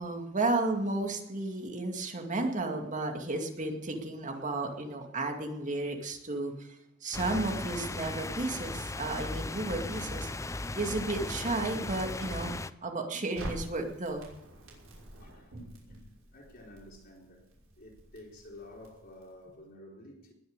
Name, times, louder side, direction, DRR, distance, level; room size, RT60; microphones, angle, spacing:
voice 1, 0.0-10.3 10.7-14.3, right 2 dB, 40° right, 2.3 m, -33 dB
sound 1, 7.1-12.7, left 2 dB, 15° left, 0.5 m, -37 dB
Crackle, 13.3-19.5, right 1 dB, 75° right, 5.8 m, -47 dB
voice 2, 15.2-15.6 15.9-16.0 16.3-20.3, left 1 dB, 50° left, 3.8 m, -51 dB
20.0 x 6.8 x 8.2 m
head